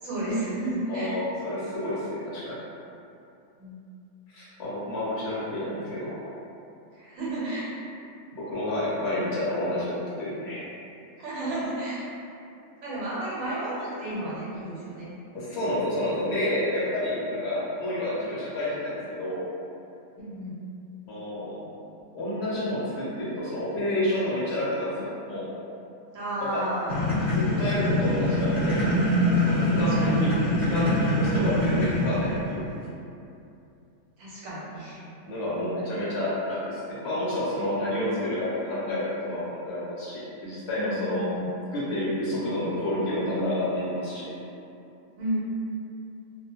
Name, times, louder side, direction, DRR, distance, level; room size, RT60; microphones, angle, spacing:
voice 1, 0.0-1.1 3.6-3.8 6.9-7.7 11.2-12.1 12.8-15.2 20.2-20.6 26.1-27.0 29.8-30.2 34.2-35.0 40.7-41.5 45.2-45.4, right 1 dB, 75° right, -8 dB, 1.1 m, -32 dB
voice 2, 0.9-2.6 4.3-6.4 8.5-10.6 15.3-19.4 21.1-21.6 22.1-25.5 26.5-26.6 27.3-28.9 29.5-32.7 35.2-41.2 41.7-44.3, left 1 dB, 60° left, -9 dB, 0.8 m, -29 dB
sound 1, 26.9-32.5, equal, 25° left, 1.0 m, -24 dB
2.3 x 2.1 x 2.8 m, 2.7 s
omnidirectional pair, 1.5 m